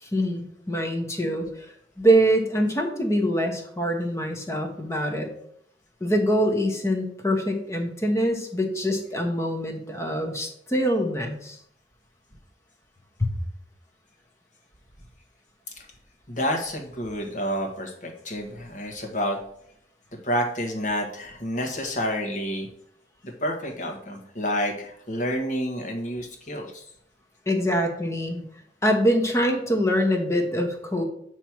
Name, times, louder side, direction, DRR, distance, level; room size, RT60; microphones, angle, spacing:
voice 1, 0.0-5.3 6.0-11.6 13.2-13.3 27.5-28.4 28.8-31.0, equal, 15° left, 3 dB, 1.1 m, -24 dB
voice 2, 16.3-19.4 20.2-22.7 23.2-26.8, equal, 45° left, 1 dB, 1.4 m, -29 dB
8.7 x 3.2 x 5.9 m, 0.69 s
head